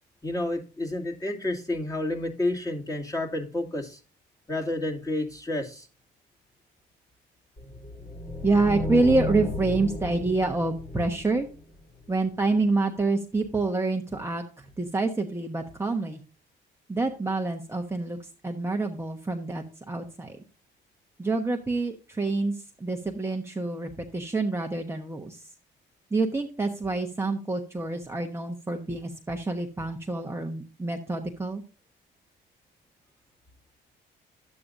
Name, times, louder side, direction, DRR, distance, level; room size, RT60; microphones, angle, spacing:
voice 1, 0.2-4.0 4.5-5.9, left 2 dB, 15° left, 0 dB, 2.3 m, -30 dB
sound 1, 7.6-12.0, left 1 dB, 35° left, 3.5 m, -34 dB
voice 2, 8.4-11.5 12.1-16.2 16.9-18.2 18.4-20.4 21.2-25.4 26.1-31.6, right 3 dB, 15° right, 2 dB, 1.1 m, -27 dB
11.5 x 8.6 x 2.6 m, 0.34 s
cardioid pair, 90°, 20 cm